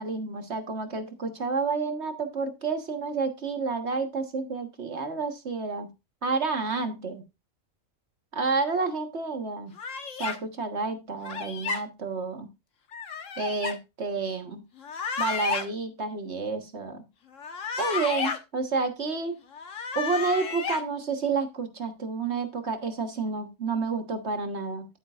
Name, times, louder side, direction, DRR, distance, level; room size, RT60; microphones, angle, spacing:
voice 1, 0.0-5.9 6.2-7.2 8.3-9.7 10.2-12.5 13.4-14.6 15.2-17.0 17.8-19.3 20.0-24.9, right 4 dB, 55° right, 6 dB, 1.7 m, -30 dB
sound 1, 9.8-10.4 11.2-11.8 12.9-13.8 14.8-15.7 17.3-18.4 19.5-20.8, left 6 dB, 70° left, 1.6 m, -32 dB
11.0 x 9.3 x 2.5 m, 0.25 s
omnidirectional pair, 1.4 m